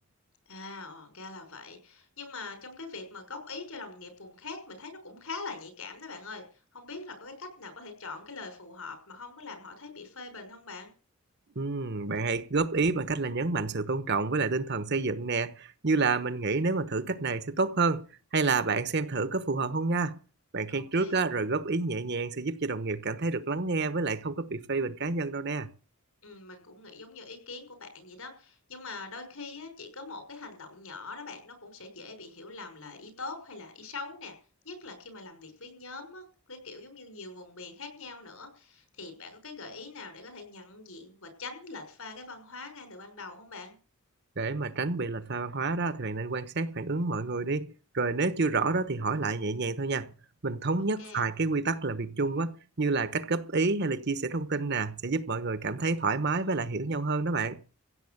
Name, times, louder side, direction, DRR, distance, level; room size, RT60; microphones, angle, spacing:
voice 1, 0.5-6.4 6.7-10.9 20.7-21.2 26.2-34.3 34.6-43.8 50.8-51.3, left 3 dB, 75° left, 5.9 m, -43 dB
voice 2, 11.5-20.2 20.5-25.7 44.4-50.1 50.4-57.6, right 3 dB, 50° right, 1.1 m, -29 dB
16.0 x 7.9 x 8.0 m
head